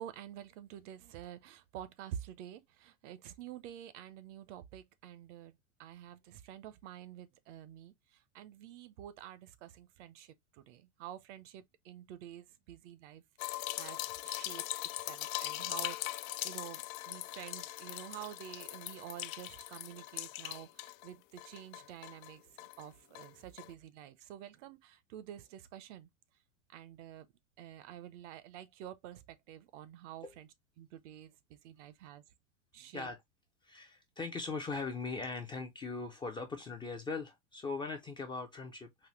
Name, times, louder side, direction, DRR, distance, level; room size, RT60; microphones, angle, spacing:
voice 1, 0.0-13.2 13.5-14.6 14.9-26.1 26.7-27.3 27.6-30.5 30.8-32.2 32.7-33.1, right 11 dB, 55° right, 0.7 m, -49 dB
sound 1, 13.4-21.1 21.4-22.9 23.1-23.3 23.6-23.7, left 16 dB, 65° left, 0.5 m, -41 dB
voice 2, 33.6-39.1, left 4 dB, 10° left, 0.4 m, -40 dB
4.2 x 2.6 x 3.0 m
hypercardioid pair, 120°, 43 cm